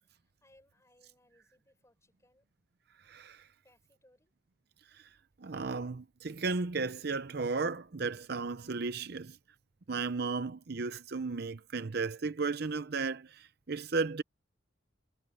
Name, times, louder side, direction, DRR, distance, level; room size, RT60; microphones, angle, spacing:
voice 1, 0.0-2.5 3.6-4.3, left 1 dB, 15° left, 6.9 m, -67 dB
voice 2, 3.1-3.5 4.9-5.1 5.4-9.4 9.9-14.2, right 4 dB, 55° right, 0.7 m, -34 dB
head